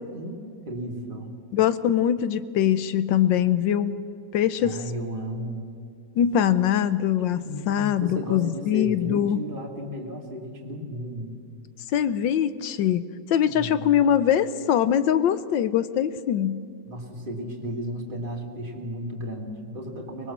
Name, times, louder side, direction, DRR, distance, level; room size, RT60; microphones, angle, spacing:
voice 1, 0.1-1.3 4.6-5.6 7.4-11.4 13.4-14.0 16.8-20.3, equal, 25° right, 0 dB, 2.7 m, -34 dB
voice 2, 1.5-4.0 4.3-4.8 6.2-9.4 11.9-13.0 13.3-16.6, left 10 dB, 80° left, 14 dB, 1.4 m, -22 dB
24.0 x 20.5 x 7.3 m, 2.3 s
omnidirectional pair, 2.0 m